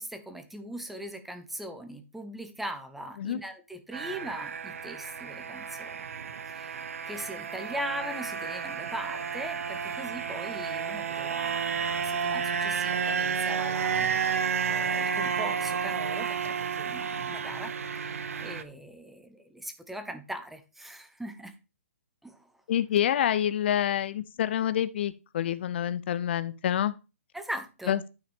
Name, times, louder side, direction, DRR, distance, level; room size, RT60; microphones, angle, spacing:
voice 1, 0.0-6.0 6.5-17.7 18.0-21.5 22.2-22.5 27.3-28.0, right 1 dB, ahead, 0.8 m, -40 dB
sound 1, 3.9-18.6, right 6 dB, 70° right, 1.0 m, -31 dB
voice 2, 22.7-26.9 27.9-28.0, left 10 dB, 45° left, 0.5 m, -27 dB
10.0 x 5.8 x 3.5 m
hypercardioid pair, 155°, 8 cm